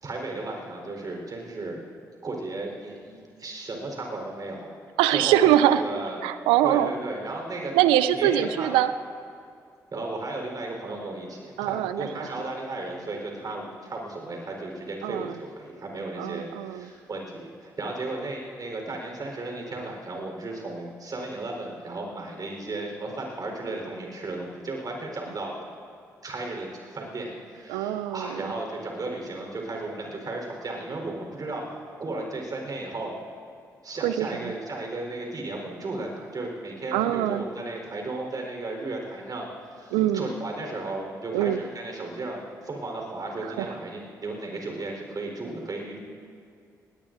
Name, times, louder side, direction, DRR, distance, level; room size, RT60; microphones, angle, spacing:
voice 1, 0.0-1.9 2.2-4.7 5.1-6.2 6.6-7.7 8.1-8.7 9.9-25.5 26.2-31.6 32.0-33.1 33.8-46.0, right 2 dB, 45° right, 1 dB, 4.2 m, -35 dB
voice 2, 5.0-5.8 6.2-6.9 7.7-8.9 11.6-12.3 15.0-15.4 16.2-16.9 27.7-28.4 34.0-34.5 36.9-37.5 39.9-40.3 41.3-41.6 43.4-43.7, right 12 dB, 80° right, 13 dB, 0.5 m, -23 dB
20.5 x 18.5 x 2.6 m, 2.4 s
hypercardioid pair, 40°, 9 cm